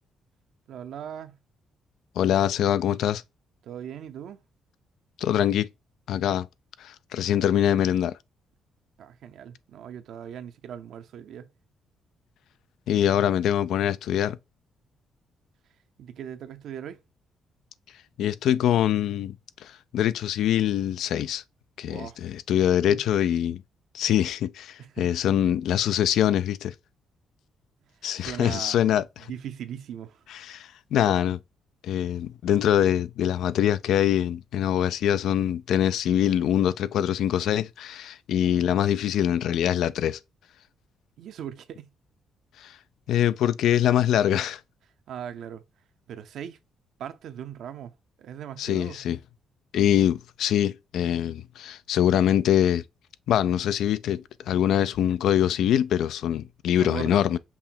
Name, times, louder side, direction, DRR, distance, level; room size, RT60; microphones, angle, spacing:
voice 1, 0.7-1.4 3.6-4.4 9.0-11.5 16.0-17.0 21.8-22.2 22.9-23.0 24.8-25.1 28.2-28.9 29.3-30.2 38.4-38.7 41.2-41.9 45.1-45.6 46.1-46.6 47.0-47.9 48.2-49.0 56.8-57.2, right 9 dB, 75° right, 0.7 m, -39 dB
voice 2, 2.2-3.2 5.2-5.7 6.1-6.5 6.8-8.1 12.9-14.4 18.2-19.3 19.6-21.4 21.8-23.6 23.9-26.7 28.0-29.0 30.3-31.4 31.8-40.2 42.6-42.7 43.1-44.6 48.6-49.2 49.7-52.8 53.3-57.4, left 10 dB, 80° left, 0.3 m, -24 dB
5.6 x 2.2 x 4.3 m
cardioid pair, 90°, 0 cm